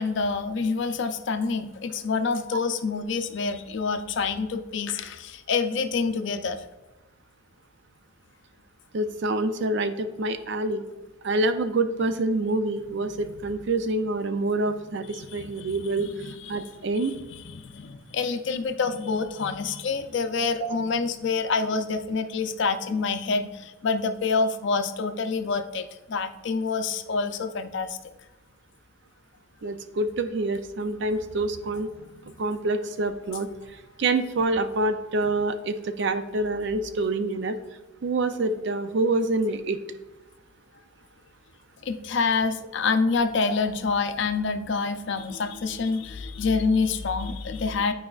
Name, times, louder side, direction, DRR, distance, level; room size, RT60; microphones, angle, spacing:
voice 1, 0.0-6.6 15.1-16.6 17.0-28.0 32.0-32.3 41.8-47.9, left 4 dB, 60° left, 8 dB, 0.5 m, -27 dB
voice 2, 8.9-10.8 11.2-16.1 16.5-17.2 18.5-18.6 20.6-20.8 29.6-31.9 32.4-33.5 34.0-37.6 38.0-39.8, right 2 dB, 60° right, 9 dB, 0.4 m, -26 dB
10.0 x 4.7 x 2.4 m, 1.1 s
head